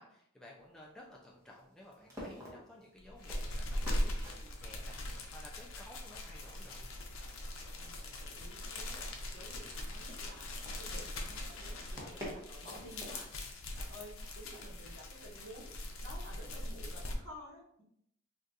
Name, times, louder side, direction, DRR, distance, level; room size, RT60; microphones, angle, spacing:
voice 1, 0.0-6.9, left 1 dB, 5° left, -4 dB, 0.3 m, -55 dB
sound 1, 0.6-16.9, equal, 15° right, 0.9 m, -53 dB
sound 2, 3.0-17.2, left 1 dB, 80° left, 0.6 m, -41 dB
voice 2, 7.6-10.5 10.8-17.8, equal, 65° right, -4 dB, 1.1 m, -53 dB
3.6 x 2.4 x 2.7 m, 0.71 s
head